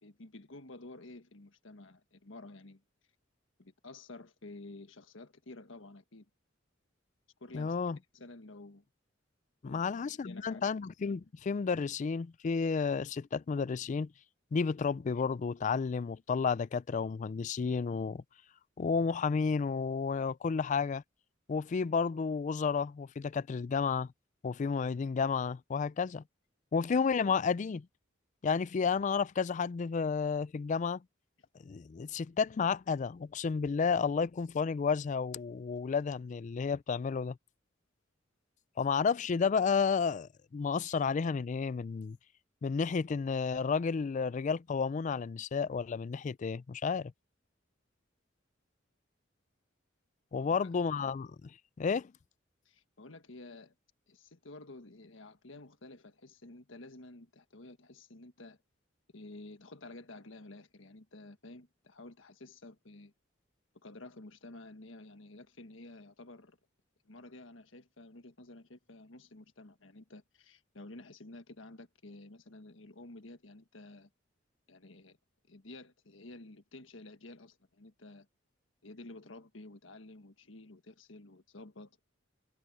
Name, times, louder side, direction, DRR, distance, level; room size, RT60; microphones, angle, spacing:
voice 1, 0.0-2.8 3.6-6.3 7.4-8.8 9.6-10.7 50.4-50.7 52.6-53.7 54.1-58.6 59.1-63.1 63.8-66.6 67.0-74.1 74.7-75.2 75.5-78.3 78.8-82.0, left 2 dB, 80° left, 1.5 m, -51 dB
voice 2, 7.5-8.0 9.6-14.1 14.5-18.2 18.8-21.0 21.5-24.1 24.4-26.2 26.7-27.9 28.4-31.0 31.6-37.4 38.8-42.2 42.6-47.1 50.3-51.5 51.8-52.1, left 5 dB, 40° left, 0.3 m, -31 dB
head